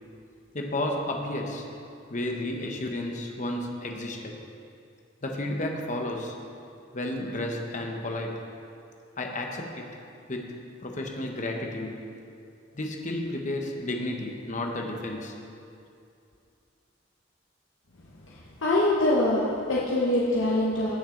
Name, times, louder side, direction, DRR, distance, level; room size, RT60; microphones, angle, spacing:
voice 1, 0.5-1.7 2.1-4.4 5.2-6.4 6.9-8.4 9.2-10.0 10.3-10.5 10.8-12.0 12.7-15.3, left 1 dB, 40° left, 1 dB, 1.1 m, -32 dB
voice 2, 18.6-20.9, left 1 dB, 85° left, -5 dB, 1.1 m, -24 dB
17.0 x 6.1 x 3.9 m, 2.5 s
head